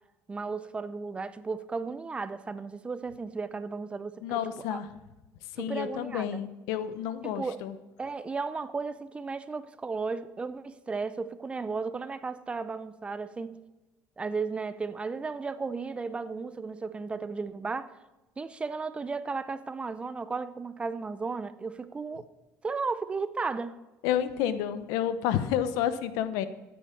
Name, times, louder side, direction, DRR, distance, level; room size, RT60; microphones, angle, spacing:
voice 1, 0.3-4.8 5.6-6.4 7.2-7.6 8.0-13.6 14.2-17.9 18.4-22.3 22.6-23.8, right 4 dB, 20° right, 0.6 m, -34 dB
voice 2, 4.2-4.9 5.5-7.7 24.0-26.5, left 10 dB, 90° left, 0.9 m, -30 dB
14.5 x 9.3 x 4.5 m
cardioid pair, 130°, 6 cm